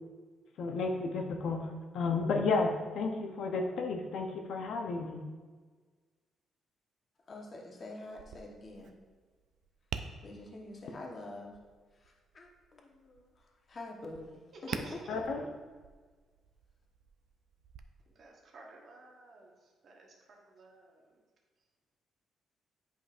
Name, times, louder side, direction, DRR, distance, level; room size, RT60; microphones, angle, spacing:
voice 1, 0.6-5.2 15.1-15.4, left 3 dB, 70° left, 3 dB, 0.7 m, -32 dB
voice 2, 7.3-8.9 10.2-11.6 12.3-13.3 13.7-14.3 14.6-15.0, left 2 dB, 35° left, 0 dB, 1.0 m, -46 dB
Tap, 8.1-17.8, right 7 dB, 75° right, 0.4 m, -48 dB
voice 3, 14.7-15.1 18.2-19.5 19.8-20.1 20.4-21.0, right 2 dB, 50° right, -1 dB, 1.1 m, -52 dB
8.6 x 5.2 x 2.5 m, 1.4 s
cardioid pair, 120°, 0 cm